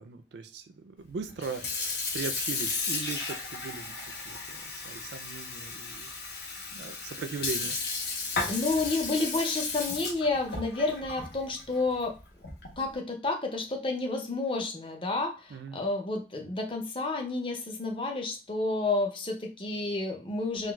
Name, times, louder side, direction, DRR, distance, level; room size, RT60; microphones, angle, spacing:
voice 1, 0.0-4.0 4.2-6.1 6.4-7.8 15.5-15.8, right 4 dB, 70° right, 8 dB, 0.4 m, -39 dB
Sink (filling or washing) / Fill (with liquid), 1.3-12.8, left 3 dB, 65° left, 0.9 m, -34 dB
voice 2, 8.5-12.1 12.8-20.7, left 3 dB, 30° left, 2 dB, 0.6 m, -30 dB
3.8 x 2.3 x 2.3 m, 0.33 s
head